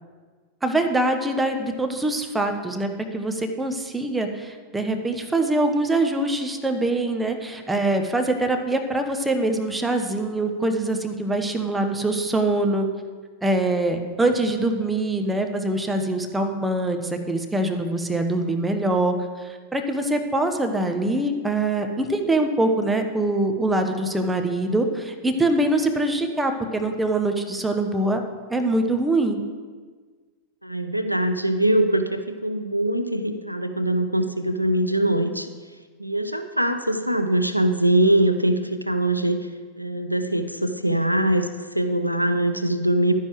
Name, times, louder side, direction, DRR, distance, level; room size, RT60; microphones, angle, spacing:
voice 1, 0.6-12.9 13.4-28.2 28.5-29.4, right 2 dB, 10° right, 5 dB, 1.0 m, -24 dB
voice 2, 30.6-35.5 36.0-39.5 39.8-43.1, right 1 dB, 90° left, 8 dB, 0.5 m, -22 dB
11.5 x 9.9 x 3.1 m, 1.5 s
figure-of-eight pair, 90°, 0 cm